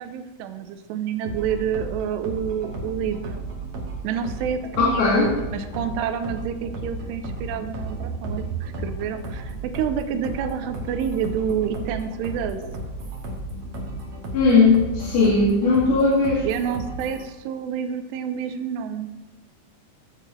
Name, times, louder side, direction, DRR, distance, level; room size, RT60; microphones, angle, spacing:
voice 1, 0.0-3.4 4.0-5.2 5.5-12.6 16.4-19.1, right 7 dB, 85° right, 8 dB, 2.7 m, -28 dB
sound 1, 1.2-17.2, right 2 dB, 55° right, 1.7 m, -34 dB
voice 2, 4.8-5.3 14.3-16.5, left 3 dB, 65° left, -8 dB, 3.8 m, -18 dB
15.0 x 9.1 x 2.7 m, 1.1 s
omnidirectional pair, 4.9 m